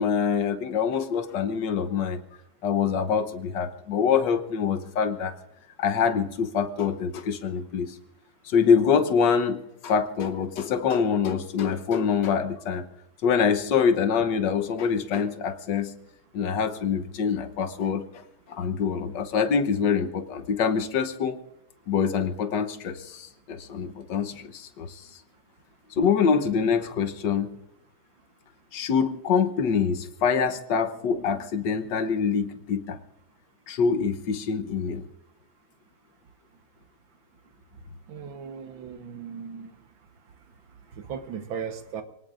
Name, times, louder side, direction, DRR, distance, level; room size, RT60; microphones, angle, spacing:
voice 1, 0.0-2.2 2.6-5.3 5.8-8.0 8.4-12.8 13.2-15.9 16.3-21.4 21.9-25.1 26.0-27.5 28.7-33.0 33.7-35.0, left 6 dB, 60° left, 9 dB, 1.6 m, -25 dB
voice 2, 38.1-39.7 40.9-42.0, right 7 dB, 70° right, 8 dB, 1.9 m, -37 dB
28.0 x 19.0 x 2.6 m, 0.87 s
omnidirectional pair, 2.3 m